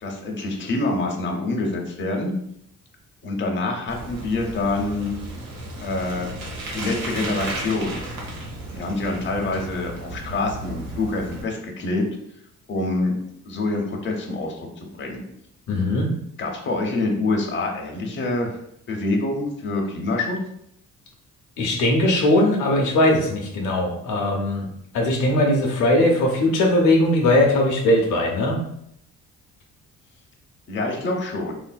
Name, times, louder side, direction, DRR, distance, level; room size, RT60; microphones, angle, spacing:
voice 1, 0.0-2.3 3.2-5.1 5.8-6.3 6.7-8.0 8.7-12.0 12.7-13.2 13.4-15.2 16.4-18.5 18.9-20.4 30.7-31.5, left 2 dB, 40° left, 1 dB, 0.7 m, -26 dB
Bicycle, 3.9-11.4, right 1 dB, 85° right, 1.0 m, -34 dB
voice 2, 15.7-16.1 21.6-24.7 24.9-28.6, left 1 dB, 80° left, 0 dB, 0.6 m, -19 dB
3.2 x 2.5 x 2.2 m, 0.73 s
cardioid pair, 90°, 30 cm